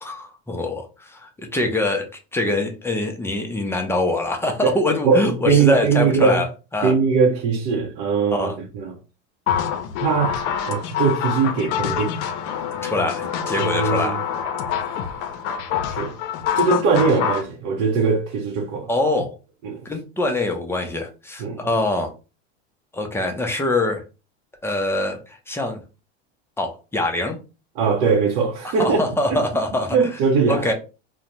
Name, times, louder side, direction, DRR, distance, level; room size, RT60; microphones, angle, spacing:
voice 1, 0.0-6.5 6.7-6.9 8.3-8.6 12.8-14.2 18.9-19.3 19.9-22.1 22.9-24.0 24.6-25.8 26.6-27.4 28.6-30.2 30.5-30.7, left 2 dB, 5° left, 0.4 m, -24 dB
voice 2, 5.0-6.4 6.8-8.9 10.0-12.2 13.6-14.2 15.9-16.2 16.5-18.9 19.6-19.9 21.4-21.6 27.8-29.0 29.9-30.7, right 5 dB, 55° right, 0.6 m, -20 dB
sound 1, 9.5-17.5, left 8 dB, 65° left, 0.6 m, -26 dB
2.5 x 2.1 x 2.9 m
supercardioid pair, 110°, 37 cm